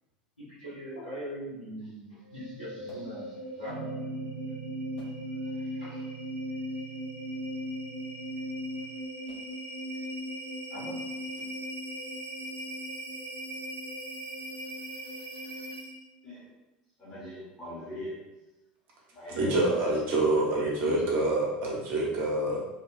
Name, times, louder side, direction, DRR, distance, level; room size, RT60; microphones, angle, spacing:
voice 1, 0.4-3.9 5.4-6.0 10.7-11.1, equal, 85° left, -9 dB, 1.1 m, -41 dB
sound 1, 2.2-16.1, equal, 60° left, 1.3 m, -38 dB
Guitar, 3.7-8.9, right 9 dB, 85° right, 0.5 m, -45 dB
voice 2, 17.0-18.1 19.1-19.7 20.5-21.0, left 1 dB, 15° left, -11 dB, 1.1 m, -40 dB
voice 3, 19.4-22.6, right 2 dB, 40° right, -3 dB, 0.8 m, -26 dB
2.8 x 2.2 x 2.5 m, 1.0 s
figure-of-eight pair, 80°, 5 cm